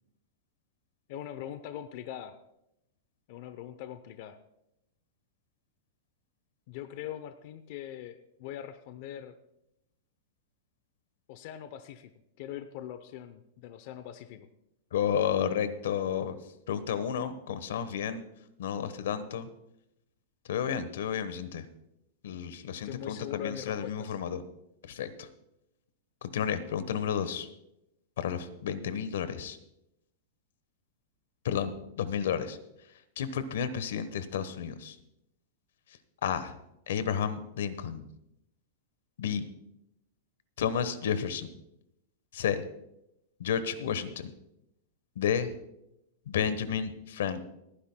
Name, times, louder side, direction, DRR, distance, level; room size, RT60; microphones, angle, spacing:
voice 1, 1.1-2.4 3.3-4.4 6.7-9.3 11.3-12.1 12.4-14.5 22.8-24.2, left 10 dB, 45° left, 10 dB, 0.6 m, -42 dB
voice 2, 14.9-16.4 16.7-18.2 18.6-19.5 20.5-21.7 22.2-24.4 24.8-25.3 26.2-27.5 28.2-29.6 31.4-32.6 33.2-35.0 36.2-36.5 36.9-38.1 39.2-39.4 40.6-41.5 42.3-42.6 43.4-44.3 45.2-45.5 46.3-47.4, left 8 dB, 80° left, 12 dB, 1.1 m, -31 dB
29.5 x 10.0 x 2.2 m, 0.86 s
supercardioid pair, 165°, 0 cm